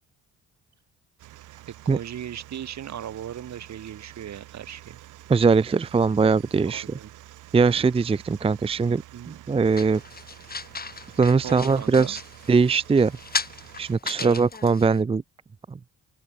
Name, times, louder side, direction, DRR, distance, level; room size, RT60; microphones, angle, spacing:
sound 1, 1.2-14.0, right 15 dB, 90° right, 5.8 m, -48 dB
voice 1, 1.7-5.0 6.6-7.1 9.1-9.4 11.4-12.2 14.2-14.4, right 10 dB, 65° right, 5.4 m, -37 dB
voice 2, 5.3-6.8 7.5-10.0 11.2-12.2 12.5-13.1 13.8-15.2 15.7-15.8, right 4 dB, 20° right, 0.6 m, -21 dB
sound 2, 9.7-15.0, left 4 dB, 30° left, 7.8 m, -36 dB
open air
cardioid pair, 90°, 30 cm